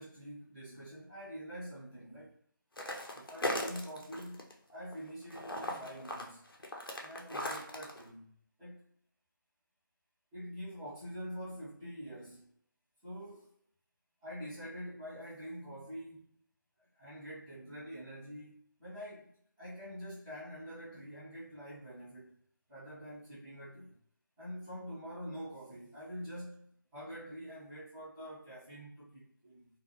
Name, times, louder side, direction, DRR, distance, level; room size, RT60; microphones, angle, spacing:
voice 1, 0.0-2.4 3.1-6.5 7.0-8.8 10.3-12.5 13.0-13.5 14.2-16.4 16.8-22.4 22.7-24.0 24.4-29.7, equal, 5° right, 0.5 m, -46 dB
sound 1, 2.8-4.5 4.8-8.0, left 1 dB, 85° left, 0.6 m, -38 dB
2.5 x 2.2 x 2.7 m
figure-of-eight pair, 160°, 12 cm